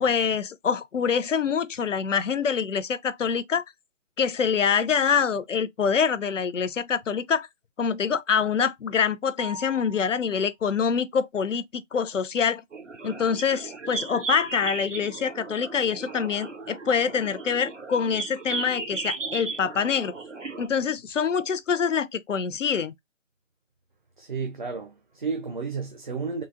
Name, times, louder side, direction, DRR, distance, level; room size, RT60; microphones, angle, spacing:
voice 1, 0.0-3.6 4.2-7.5 7.8-12.6 13.0-20.1 20.6-22.9, left 6 dB, 75° left, 0.6 m, -25 dB
sound 1, 9.4-10.4, equal, 25° left, 0.5 m, -41 dB
sound 2, 12.7-20.7, right 4 dB, 80° right, 1.2 m, -36 dB
voice 2, 24.2-26.4, right 5 dB, 40° right, 0.5 m, -32 dB
3.8 x 2.1 x 2.4 m
figure-of-eight pair, 155°, 38 cm